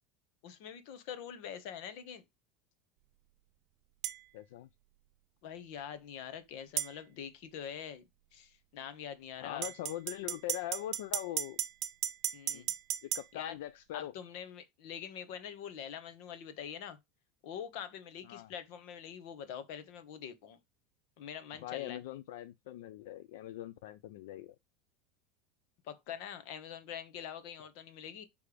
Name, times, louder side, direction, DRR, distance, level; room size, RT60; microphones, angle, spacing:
voice 1, 0.4-2.2 5.4-8.1 8.3-9.7 12.3-12.7 13.3-13.5 13.9-17.0 17.4-20.6 21.2-22.0 25.8-28.2, left 8 dB, 60° left, 1.2 m, -44 dB
sound 1, 4.0-4.2 6.8-6.9 9.6-13.3, right 12 dB, 45° right, 0.5 m, -35 dB
voice 2, 4.3-4.7 9.4-11.6 12.5-12.7 13.0-14.1 18.2-18.5 21.6-24.6, left 14 dB, 80° left, 0.4 m, -42 dB
6.7 x 3.5 x 5.0 m
supercardioid pair, 155°, 0 cm